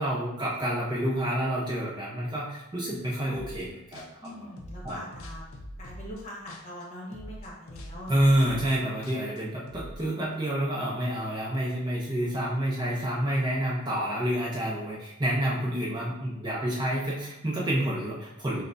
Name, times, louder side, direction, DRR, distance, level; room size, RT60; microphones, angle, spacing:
voice 1, 0.0-4.5 4.8-5.0 8.1-18.6, right 1 dB, 20° right, -6 dB, 0.5 m, -28 dB
sound 1, 3.3-3.7 3.9-6.9 7.1-10.0, equal, 85° left, 0.5 m, -43 dB
voice 2, 4.2-5.5 5.8-8.2, equal, 30° left, -4 dB, 1.0 m, -42 dB
6.4 x 2.2 x 2.5 m, 0.94 s
head